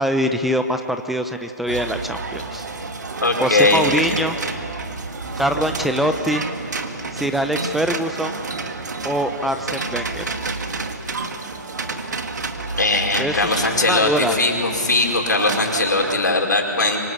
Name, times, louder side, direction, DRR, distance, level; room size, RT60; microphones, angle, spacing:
voice 1, 0.0-2.7 3.4-4.4 5.4-6.5 7.1-8.3 9.0-10.2 13.2-14.3, equal, ahead, 7 dB, 0.7 m, -23 dB
sound 1, 1.7-16.1, right 3 dB, 70° right, 2.2 m, -29 dB
voice 2, 3.2-3.8 12.8-17.0, left 2 dB, 80° left, 1 dB, 5.1 m, -19 dB
27.0 x 25.0 x 8.5 m, 2.5 s
figure-of-eight pair, 140°, 10 cm